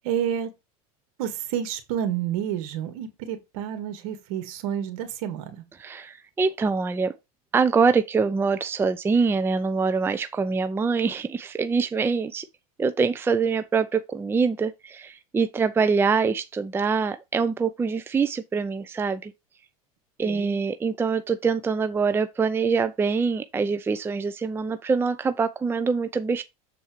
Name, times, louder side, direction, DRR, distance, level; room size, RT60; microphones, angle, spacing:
voice 1, 0.0-0.5 1.2-5.6 20.2-20.6, right 9 dB, 65° right, 2.1 m, -29 dB
voice 2, 5.8-7.1 7.5-12.4 12.8-19.3 20.2-26.4, right 5 dB, 10° right, 0.5 m, -24 dB
7.3 x 4.2 x 4.6 m
supercardioid pair, 115°, 19 cm